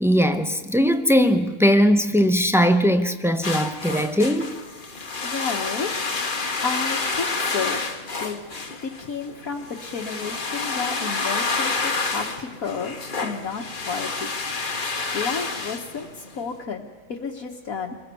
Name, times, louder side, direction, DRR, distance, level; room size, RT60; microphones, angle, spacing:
voice 1, 0.0-4.6, equal, ahead, 0.6 m, -19 dB
sound 1, 3.4-16.4, left 3 dB, 30° left, 1.5 m, -29 dB
voice 2, 5.2-5.9 6.6-7.8 8.2-8.4 8.8-14.3 15.1-18.0, left 5 dB, 55° left, 1.8 m, -31 dB
26.5 x 22.0 x 7.0 m
omnidirectional pair, 1.8 m